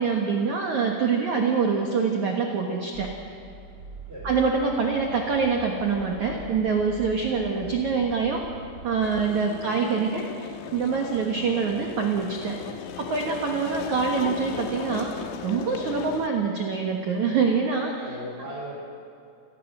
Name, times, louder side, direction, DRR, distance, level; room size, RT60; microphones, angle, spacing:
voice 1, 0.0-3.3 4.2-8.4 8.8-12.6 13.0-15.1 15.4-18.0, right 5 dB, 80° right, 1 dB, 1.7 m, -25 dB
sound 1, 2.9-9.3, right 3 dB, 65° right, 0.9 m, -43 dB
sound 2, 9.0-16.3, left 8 dB, 75° left, 3.2 m, -37 dB
voice 2, 9.5-9.8 13.6-13.8 16.3-16.5 18.0-18.7, right 1 dB, 15° right, -4 dB, 2.4 m, -39 dB
28.0 x 17.5 x 6.3 m, 2.6 s
omnidirectional pair, 5.9 m